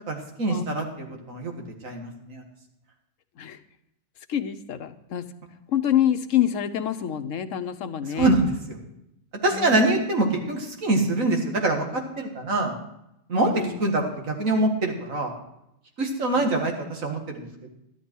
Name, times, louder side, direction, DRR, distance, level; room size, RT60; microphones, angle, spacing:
voice 1, 0.1-1.5 1.8-2.4 8.1-8.8 9.4-12.7 13.3-15.3 16.0-17.7, right 2 dB, 85° right, 2 dB, 2.2 m, -24 dB
voice 2, 4.3-5.2 5.7-8.3 9.5-10.0 12.5-12.7 13.5-13.8 16.4-16.5, left 10 dB, 75° left, 9 dB, 1.2 m, -27 dB
13.0 x 11.0 x 4.5 m, 0.81 s
omnidirectional pair, 1.4 m